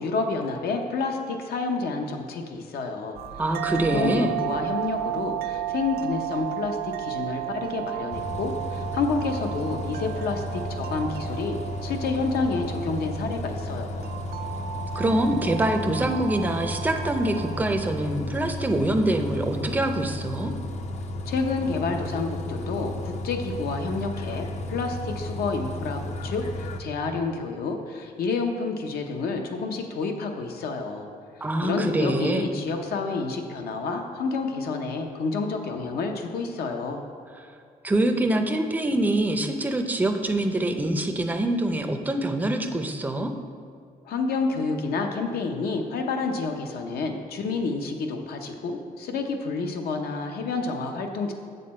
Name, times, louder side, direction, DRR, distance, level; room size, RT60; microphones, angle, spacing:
voice 1, 0.0-3.2 3.7-14.1 21.3-31.1 31.6-37.0 44.0-51.3, left 4 dB, 80° left, 4 dB, 0.8 m, -29 dB
sound 1, 3.1-17.7, right 13 dB, 70° right, 0.4 m, -34 dB
voice 2, 3.4-4.3 14.9-20.5 31.4-32.5 37.8-43.3, right 1 dB, 10° right, 5 dB, 0.5 m, -25 dB
Bus, 8.1-26.8, left 1 dB, 45° left, 0.5 m, -33 dB
7.4 x 6.7 x 4.3 m, 2.2 s
cardioid pair, 155°, 16 cm